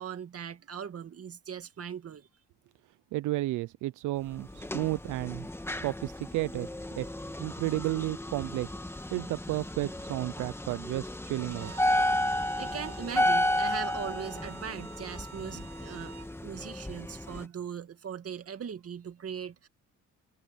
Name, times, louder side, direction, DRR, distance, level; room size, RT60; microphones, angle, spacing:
voice 1, 0.0-2.3 12.6-19.7, right 8 dB, 50° right, 2.3 m, -40 dB
voice 2, 3.1-5.5 5.8-6.7 7.0-7.1 7.4-8.7 9.1-11.7, right 18 dB, 90° right, 0.6 m, -32 dB
sound 1, 4.3-17.5, left 1 dB, 10° left, 1.9 m, -33 dB
Bowed string instrument, 11.4-16.3, right 10 dB, 70° right, 7.1 m, -51 dB
cardioid pair, 90°, 30 cm